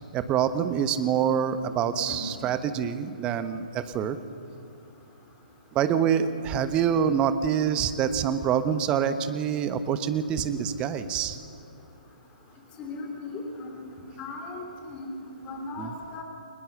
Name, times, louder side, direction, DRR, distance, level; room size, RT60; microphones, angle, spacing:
voice 1, 0.1-4.2 5.7-11.4 15.8-15.9, right 8 dB, 20° right, 12 dB, 1.1 m, -26 dB
voice 2, 12.8-13.9 14.2-16.2, left 2 dB, 20° left, 2 dB, 3.2 m, -37 dB
29.5 x 20.5 x 6.9 m, 2.5 s
figure-of-eight pair, 125°, 5 cm